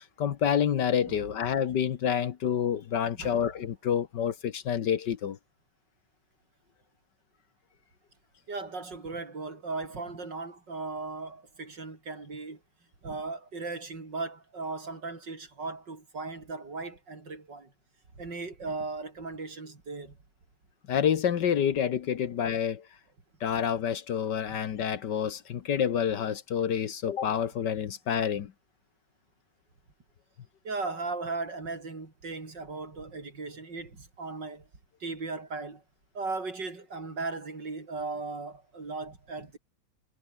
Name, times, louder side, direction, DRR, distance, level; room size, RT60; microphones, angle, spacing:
voice 1, 0.2-5.4 20.9-22.8 23.4-28.5, left 8 dB, 60° left, 1.7 m, -28 dB
voice 2, 8.5-12.6 13.0-17.7 18.2-20.2 24.5-24.6 30.6-34.7 35.0-35.8 36.1-39.6, right 3 dB, 60° right, 4.9 m, -37 dB
omnidirectional pair, 2.2 m